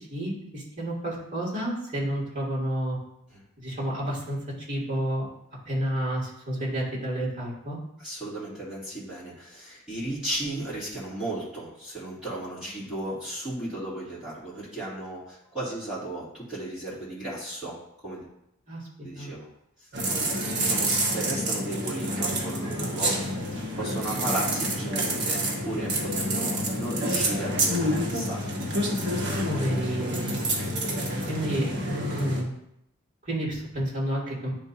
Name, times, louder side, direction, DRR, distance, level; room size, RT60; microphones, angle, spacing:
voice 1, 0.0-3.0 3.6-4.4 4.7-5.3 5.7-7.8 18.7-18.8 19.1-19.3 23.8-23.9 29.5-30.4 31.3-32.5 33.3-34.5, right 1 dB, 35° right, -8 dB, 2.5 m, -30 dB
voice 2, 8.0-17.8 18.0-18.3 19.0-19.5 19.8-19.9 20.5-23.2 23.5-28.4, right 1 dB, 5° right, -11 dB, 2.5 m, -35 dB
sound 1, 19.9-32.4, right 1 dB, 50° right, 1.2 m, -28 dB
10.5 x 3.6 x 2.8 m, 0.79 s
head